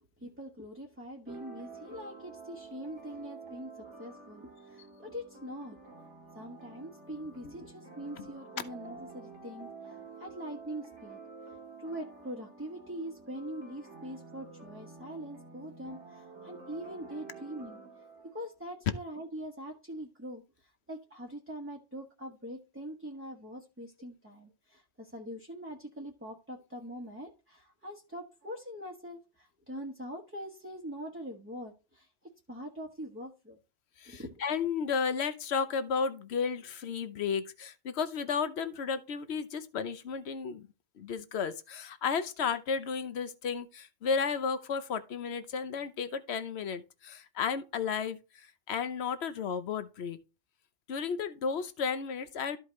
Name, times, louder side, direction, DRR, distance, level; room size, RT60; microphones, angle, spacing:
voice 1, 0.0-5.8 6.3-11.2 11.4-32.1 32.5-33.6 34.1-34.3, equal, 10° right, 1.1 m, -43 dB
sound 1, 1.3-18.5, right 4 dB, 85° right, 2.1 m, -49 dB
voice 2, 34.0-40.7 41.0-50.2 50.9-52.6, left 6 dB, 65° left, 1.1 m, -33 dB
13.0 x 4.9 x 3.2 m
omnidirectional pair, 1.2 m